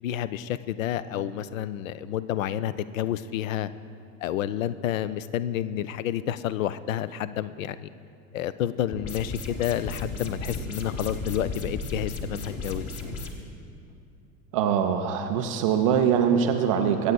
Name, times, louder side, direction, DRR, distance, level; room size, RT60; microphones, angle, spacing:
voice 1, 0.0-3.7 4.2-7.9 8.3-12.9, left 11 dB, 55° left, 15 dB, 0.5 m, -30 dB
sound 1, 8.9-13.3, left 2 dB, 30° left, 1.2 m, -34 dB
voice 2, 14.5-17.1, right 8 dB, 25° right, 5 dB, 0.3 m, -23 dB
24.5 x 8.3 x 2.2 m, 2.4 s
figure-of-eight pair, 85°, 48 cm